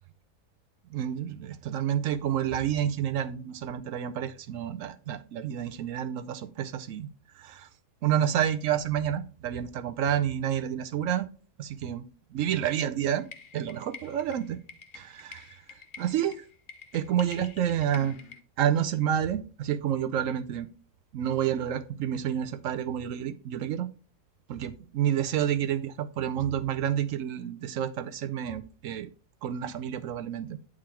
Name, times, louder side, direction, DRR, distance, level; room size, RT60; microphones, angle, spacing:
voice 1, 0.9-7.1 7.4-7.7 8.0-11.3 11.6-12.0 12.3-13.3 13.5-14.6 14.9-15.5 16.0-16.4 16.9-18.2 18.6-20.7 21.1-23.9 24.5-29.1 29.4-30.6, right 10 dB, 70° right, 0.8 m, -29 dB
sound 1, 13.2-18.4, left 5 dB, 55° left, 0.5 m, -47 dB
8.7 x 3.7 x 4.3 m
omnidirectional pair, 1.7 m